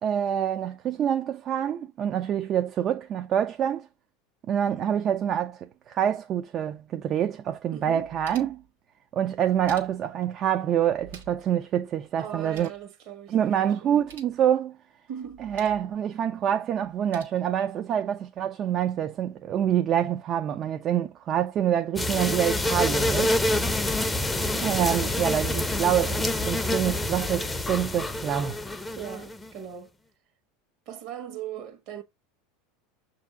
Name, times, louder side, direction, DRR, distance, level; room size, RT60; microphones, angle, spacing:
voice 1, 0.0-3.9 4.5-8.6 9.1-12.7 13.3-14.8 15.4-23.4 24.5-28.6, right 9 dB, 40° right, 0.4 m, -26 dB
voice 2, 7.7-8.1 12.2-14.1 15.1-15.4 29.0-29.9 30.9-32.0, right 9 dB, 55° right, 1.2 m, -39 dB
sound 1, 7.8-8.7 9.4-10.2 10.9-11.5 11.8-11.9 12.2-12.8 13.9-14.4 15.2-15.9 16.8-17.2, right 5 dB, 85° right, 1.2 m, -49 dB
Wasp - Harassing left and right microphones, 22.0-29.5, left 1 dB, 10° left, 0.5 m, -27 dB
6.5 x 2.7 x 2.3 m
hypercardioid pair, 100°, 0 cm